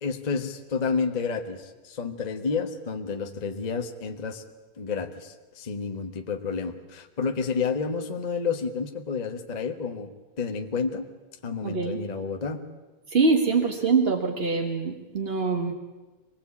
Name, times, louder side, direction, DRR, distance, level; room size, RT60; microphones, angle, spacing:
voice 1, 0.0-4.4 4.8-10.1 10.4-11.1 11.4-12.6, left 5 dB, 75° left, 5 dB, 0.4 m, -30 dB
voice 2, 11.6-12.0 13.1-15.7, right 4 dB, 35° right, 3 dB, 0.9 m, -24 dB
24.0 x 20.0 x 8.6 m, 1.2 s
omnidirectional pair, 3.3 m